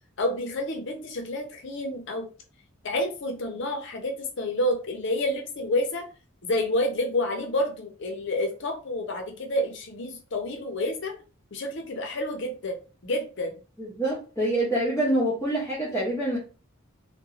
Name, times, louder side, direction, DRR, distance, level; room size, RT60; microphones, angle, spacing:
voice 1, 0.2-2.3 2.8-6.0 6.4-11.1 11.5-13.6, left 1 dB, 60° left, 4 dB, 0.6 m, -29 dB
voice 2, 13.8-16.4, right 1 dB, 15° left, -6 dB, 0.6 m, -26 dB
2.9 x 2.2 x 2.4 m, 0.36 s
head